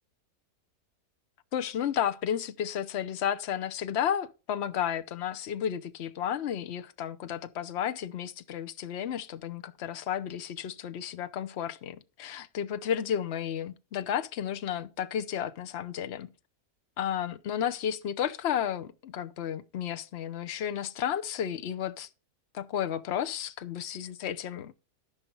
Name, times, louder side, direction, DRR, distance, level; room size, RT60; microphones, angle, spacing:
voice 1, 1.5-16.3 17.0-22.1 22.5-24.7, left 9 dB, 50° left, 1.0 m, -32 dB
14.5 x 5.7 x 5.4 m
omnidirectional pair, 1.6 m